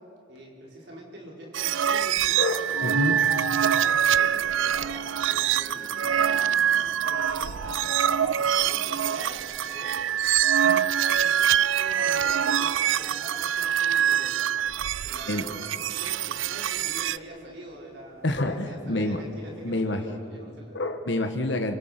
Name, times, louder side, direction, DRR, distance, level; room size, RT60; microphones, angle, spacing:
voice 1, 0.3-3.0 3.6-6.6 7.0-10.0 10.6-12.7 13.0-14.3 15.0-15.7 16.0-20.7, equal, 60° right, -2 dB, 5.2 m, -44 dB
sound 1, 1.5-17.2, right 9 dB, 90° right, 0.4 m, -25 dB
voice 2, 2.4-3.2 15.3-15.5 18.2-19.2 19.6-20.0 20.7-21.8, left 2 dB, 65° left, 5 dB, 1.4 m, -27 dB
sound 2, 2.8-19.9, left 1 dB, 20° left, 2.4 m, -46 dB
26.0 x 24.5 x 6.0 m, 2.8 s
head